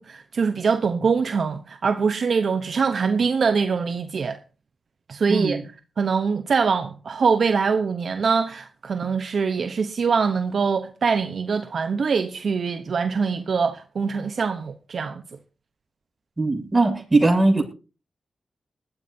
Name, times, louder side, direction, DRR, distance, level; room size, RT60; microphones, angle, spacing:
voice 1, 0.0-4.4 5.1-5.6 6.0-15.2, right 5 dB, 70° right, 0.9 m, -23 dB
voice 2, 5.3-5.6 16.4-17.6, right 2 dB, 30° right, 7.2 m, -20 dB
20.0 x 13.5 x 2.7 m
cardioid pair, 50°, 0 cm